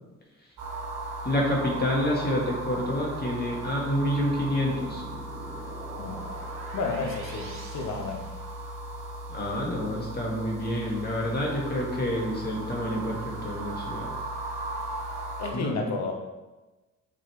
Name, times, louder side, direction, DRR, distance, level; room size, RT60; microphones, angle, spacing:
sound 1, 0.6-15.5, right 1 dB, 85° right, 1.4 m, -37 dB
voice 1, 1.2-5.0 9.3-14.1 15.5-15.8, left 1 dB, 30° left, -2 dB, 1.8 m, -28 dB
sound 2, 4.1-8.9, right 2 dB, 45° right, 1.8 m, -45 dB
voice 2, 6.7-8.2 15.4-16.1, left 3 dB, 60° left, 2 dB, 1.2 m, -31 dB
7.6 x 4.2 x 3.2 m, 1.2 s
cardioid pair, 90°, 30 cm